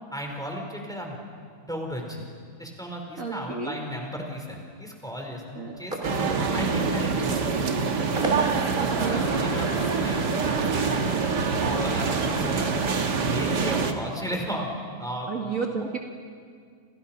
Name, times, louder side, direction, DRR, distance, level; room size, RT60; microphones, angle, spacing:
voice 1, 0.1-1.2 1.6-2.3 2.6-6.1 6.5-7.7 8.3-12.7 13.3-14.7 15.0-15.5, equal, ahead, 1 dB, 4.5 m, -35 dB
voice 2, 3.2-3.8 5.6-5.7 6.6-6.7 8.7-9.3 15.3-16.0, right 5 dB, 50° right, 0 dB, 2.4 m, -32 dB
sound 1, 5.7-13.1, right 1 dB, 30° right, 3.3 m, -37 dB
sound 2, 6.0-13.9, right 5 dB, 85° right, 2.3 m, -25 dB
29.5 x 28.5 x 6.0 m, 2.1 s
omnidirectional pair, 1.8 m